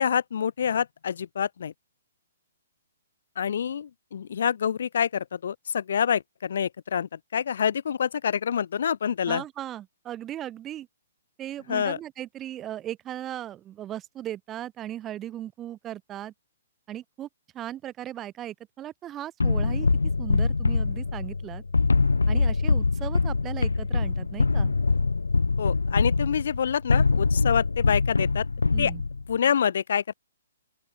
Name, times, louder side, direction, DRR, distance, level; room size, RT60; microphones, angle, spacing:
voice 1, 0.0-1.7 3.4-9.4 11.7-12.0 25.6-28.4 28.8-28.9 29.3-30.1, left 8 dB, 55° left, 3.5 m, -27 dB
voice 2, 9.3-10.9 11.4-16.3 16.9-17.3 17.5-19.9 20.2-21.6 22.3-24.7 28.7-29.0, right 12 dB, 20° right, 4.8 m, -37 dB
sound 1, 19.4-29.3, left 3 dB, 75° left, 1.6 m, -24 dB
open air
figure-of-eight pair, 125°, 0 cm